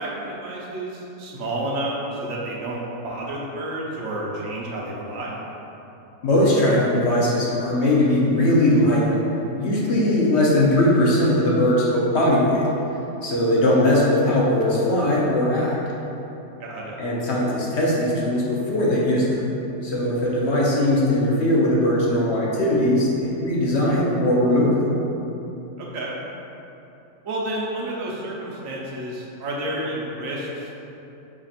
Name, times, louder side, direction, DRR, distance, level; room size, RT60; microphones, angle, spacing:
voice 1, 0.0-5.4 16.6-17.0 25.8-26.1 27.2-30.7, right 1 dB, 80° right, -4 dB, 1.2 m, -30 dB
voice 2, 6.2-9.2 9.5-12.7 13.2-15.8 17.0-19.6 19.8-24.9, left 1 dB, 60° left, -5 dB, 1.0 m, -20 dB
5.1 x 2.5 x 4.0 m, 3.0 s
omnidirectional pair, 1.4 m